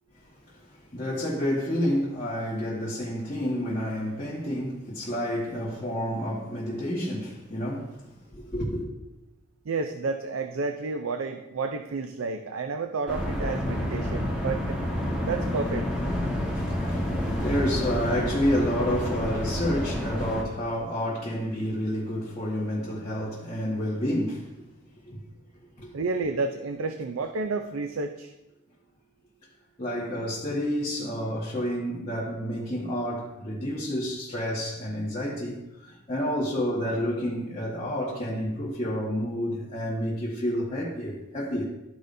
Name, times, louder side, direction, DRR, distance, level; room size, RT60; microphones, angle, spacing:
voice 1, 0.5-8.8 16.5-24.6 25.0-25.2 25.8-25.9 29.8-41.6, equal, 30° left, 1.4 m, -29 dB
voice 2, 9.7-14.8 15.2-15.9 25.9-28.3, right 4 dB, 85° right, 0.5 m, -30 dB
sound 1, 13.1-20.4, left 1 dB, 5° right, 1.3 m, -29 dB
13.5 x 5.0 x 2.6 m
head